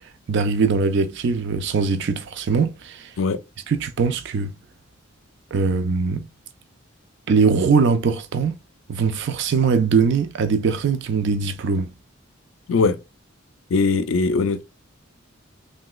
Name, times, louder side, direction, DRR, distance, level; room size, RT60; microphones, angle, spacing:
voice 1, 0.3-3.1 3.7-4.5 5.5-6.3 7.3-8.6 8.9-11.9, right 5 dB, 60° right, 0.4 m, -21 dB
voice 2, 12.7-13.0 13.7-14.6, left 4 dB, 70° left, 0.4 m, -20 dB
3.2 x 2.9 x 2.3 m
head